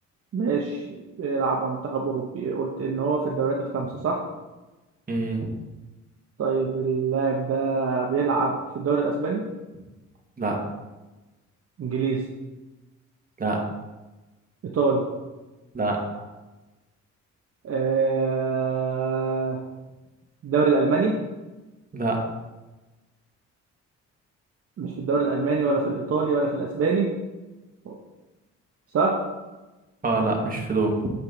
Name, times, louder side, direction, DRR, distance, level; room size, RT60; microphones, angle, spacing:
voice 1, 0.3-0.8 1.2-4.2 6.4-9.4 11.8-12.2 14.6-15.0 17.6-19.6 20.4-21.2 24.8-27.1 27.9-28.0 28.9-29.1, right 4 dB, 50° right, -1 dB, 1.0 m, -24 dB
voice 2, 5.1-5.5 10.4-10.6 13.4-13.6 15.7-16.0 21.9-22.2 30.0-31.1, right 3 dB, 30° right, 1 dB, 1.8 m, -25 dB
8.3 x 5.3 x 4.0 m, 1.1 s
cardioid pair, 90°, 30 cm